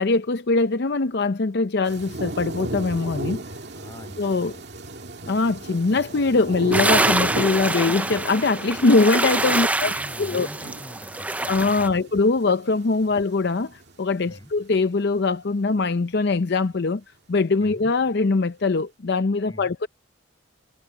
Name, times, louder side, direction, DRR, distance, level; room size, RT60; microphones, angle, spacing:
voice 1, 0.0-3.4 4.2-4.5 5.3-9.9 10.2-10.5 11.5-17.0 17.3-19.9, left 3 dB, 55° left, 0.6 m, -22 dB
sound 1, 1.8-14.8 15.1-15.2, right 1 dB, 55° right, 2.3 m, -35 dB
voice 2, 3.7-4.9 9.5-9.7 9.9-12.0 14.2-14.5 17.6-17.8 19.5-19.7, equal, 20° left, 5.0 m, -44 dB
sound 2, 6.7-11.9, right 2 dB, 5° right, 0.4 m, -25 dB
head